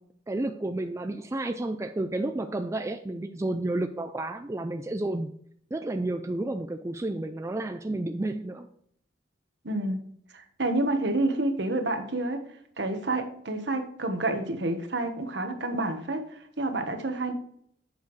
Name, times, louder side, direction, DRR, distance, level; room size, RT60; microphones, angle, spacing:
voice 1, 0.3-5.3 5.7-8.7, right 2 dB, 15° right, 7 dB, 0.4 m, -31 dB
voice 2, 9.6-10.0 10.3-12.4 12.8-17.3, right 2 dB, 65° right, 6 dB, 1.2 m, -29 dB
8.2 x 6.6 x 3.2 m, 0.66 s
head